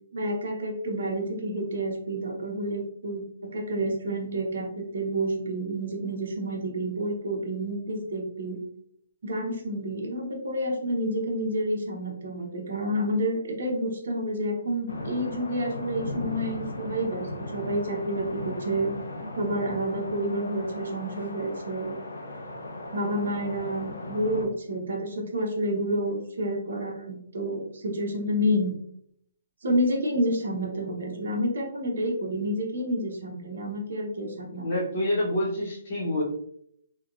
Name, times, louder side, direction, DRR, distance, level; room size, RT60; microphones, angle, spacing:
voice 1, 0.1-8.6 9.2-18.9 19.4-22.0 22.9-28.8 29.6-34.7, equal, 65° right, 0 dB, 0.9 m, -29 dB
sound 1, 14.9-24.4, left 2 dB, 85° left, 0.7 m, -37 dB
voice 2, 34.6-36.2, left 1 dB, 35° left, -7 dB, 0.8 m, -27 dB
3.4 x 2.3 x 2.4 m, 0.69 s
hypercardioid pair, 170°, 0 cm